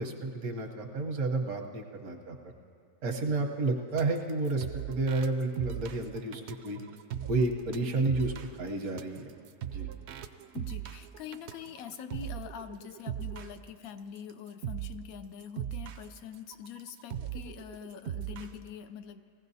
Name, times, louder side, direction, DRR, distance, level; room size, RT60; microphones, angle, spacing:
voice 1, 0.0-2.4 3.0-6.8 7.3-9.3 9.6-9.9, right 3 dB, 90° right, 2 dB, 1.5 m, -31 dB
sound 1, 4.0-13.6 14.2-14.3 14.6-15.0 15.4-18.6, right 11 dB, 65° right, 0.7 m, -39 dB
voice 2, 10.5-19.2, left 8 dB, 85° left, 9 dB, 1.0 m, -44 dB
19.5 x 15.5 x 2.7 m, 2.5 s
omnidirectional pair, 1.5 m